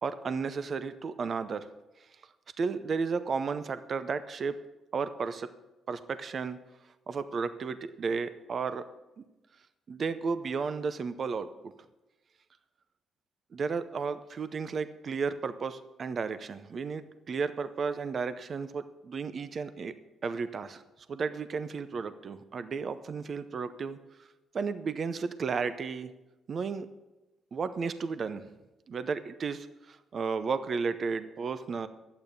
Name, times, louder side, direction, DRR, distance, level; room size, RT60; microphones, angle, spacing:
voice 1, 0.0-1.7 2.6-4.6 4.9-5.5 5.9-6.6 7.1-8.8 9.9-11.7 13.5-19.9 20.2-20.8 21.1-24.0 24.5-26.1 26.5-26.9 27.5-28.5 28.9-31.9, right 5 dB, 50° right, 12 dB, 0.6 m, -33 dB
11.5 x 8.9 x 6.7 m, 1.0 s
cardioid pair, 90°, 0 cm